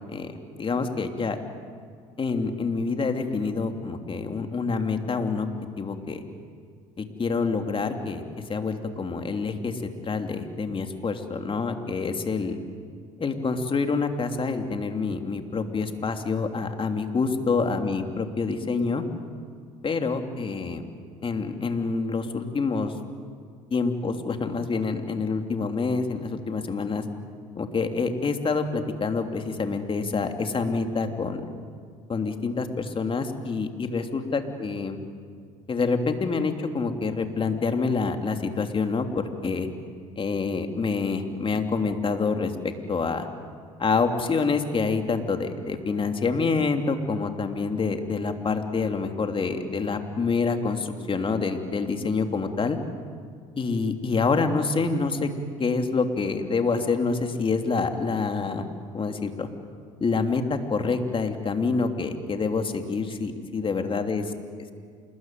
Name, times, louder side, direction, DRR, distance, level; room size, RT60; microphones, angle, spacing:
voice 1, 0.6-1.4 2.2-5.5 5.8-6.2 7.0-8.2 8.5-12.6 13.2-19.0 19.8-20.8 21.2-22.9 23.7-27.0 27.6-31.4 32.1-35.0 35.7-39.7 40.2-43.3 43.8-52.8 53.6-55.3 55.6-58.7 58.9-59.5 60.0-64.2 64.6-64.7, left 4 dB, 30° left, 5 dB, 3.1 m, -27 dB
27.5 x 21.5 x 9.4 m, 2.1 s
hypercardioid pair, 70°, 17 cm